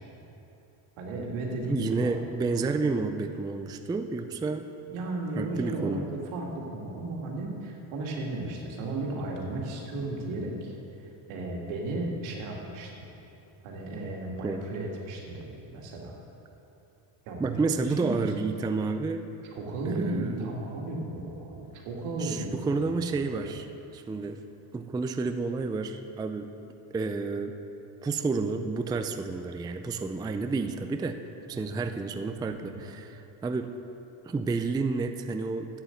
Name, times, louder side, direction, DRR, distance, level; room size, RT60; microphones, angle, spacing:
voice 1, 1.0-2.1 4.9-10.7 11.0-13.0 13.6-16.1 17.3-18.5 19.5-23.5 31.5-31.8 32.5-32.8, right 2 dB, 80° right, -1 dB, 2.3 m, -35 dB
voice 2, 1.7-4.6 5.4-6.1 14.4-14.6 17.4-19.3 19.9-20.5 22.2-23.7 23.9-24.4 24.7-26.5 26.9-27.6 28.0-31.2 31.5-33.7 34.3-35.8, right 4 dB, 10° right, 7 dB, 0.3 m, -30 dB
8.2 x 7.9 x 7.8 m, 2.9 s
supercardioid pair, 95°, 49 cm